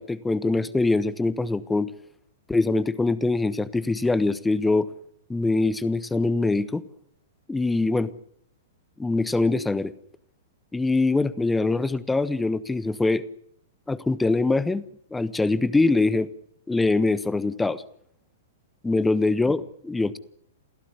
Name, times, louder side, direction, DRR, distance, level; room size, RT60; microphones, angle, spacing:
voice 1, 0.0-1.9 2.5-4.9 5.3-6.8 7.5-8.1 9.0-9.9 10.7-13.2 13.9-14.8 15.1-16.3 16.7-17.8 18.8-20.2, left 3 dB, 10° left, 16 dB, 1.2 m, -23 dB
28.0 x 16.5 x 9.8 m, 0.70 s
figure-of-eight pair, 110°, 0 cm